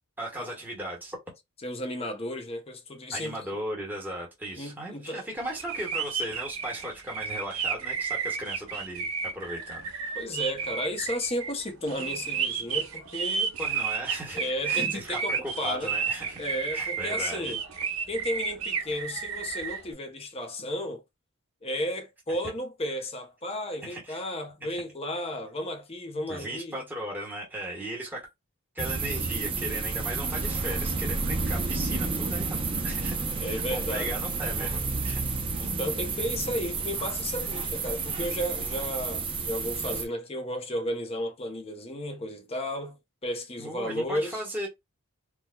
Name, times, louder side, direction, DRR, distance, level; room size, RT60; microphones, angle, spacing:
voice 1, 0.2-1.2 3.1-9.9 13.6-16.4 16.7-17.5 23.8-24.2 24.7-24.8 26.3-28.2 28.7-35.2 43.6-44.7, right 1 dB, 10° right, 1.2 m, -37 dB
voice 2, 1.6-3.4 4.5-5.3 10.1-13.6 14.3-15.9 16.4-17.6 18.1-21.0 21.6-26.8 33.4-34.1 35.6-43.0 43.2-44.4, left 1 dB, 25° left, 0.7 m, -33 dB
sound 1, 5.5-19.8, right 6 dB, 75° right, 0.9 m, -32 dB
sound 2, 28.8-40.0, right 4 dB, 25° right, 0.6 m, -30 dB
4.5 x 2.2 x 2.3 m
head